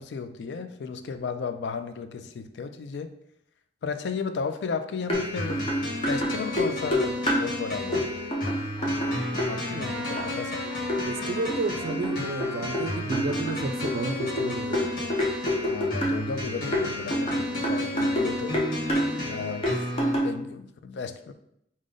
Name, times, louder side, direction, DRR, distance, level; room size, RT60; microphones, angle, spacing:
voice 1, 0.0-3.1 3.8-5.6 6.0-8.2 9.5-10.9 15.6-18.7 19.3-19.8 20.2-21.3, left 5 dB, 75° left, 9 dB, 0.3 m, -34 dB
sound 1, 5.1-20.1, left 1 dB, 50° left, 1.2 m, -33 dB
sound 2, 5.1-5.2 5.5-7.5 7.9-8.1 8.3-9.5 10.2-10.3 10.9-11.0 11.5-12.9 13.1-16.2 16.7-18.3 18.5-19.1 19.6-20.3, equal, 30° left, 0.7 m, -26 dB
Trumpet, 8.8-15.9, left 1 dB, 10° left, 1.0 m, -42 dB
voice 2, 11.0-15.1, right 3 dB, 55° right, 7 dB, 0.4 m, -32 dB
4.9 x 2.1 x 3.8 m, 0.76 s
head